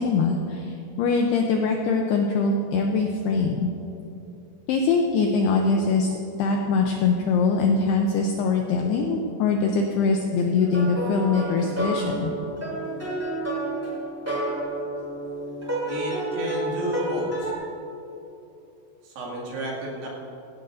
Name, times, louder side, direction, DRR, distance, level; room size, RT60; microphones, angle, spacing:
voice 1, 0.0-3.7 4.7-12.3, left 4 dB, 85° left, 2 dB, 2.3 m, -23 dB
sound 1, 10.6-17.5, right 1 dB, 5° right, 1.7 m, -30 dB
voice 2, 15.8-17.5 19.0-20.1, equal, 75° right, -3 dB, 4.5 m, -31 dB
17.0 x 16.0 x 2.6 m, 2.9 s
omnidirectional pair, 5.5 m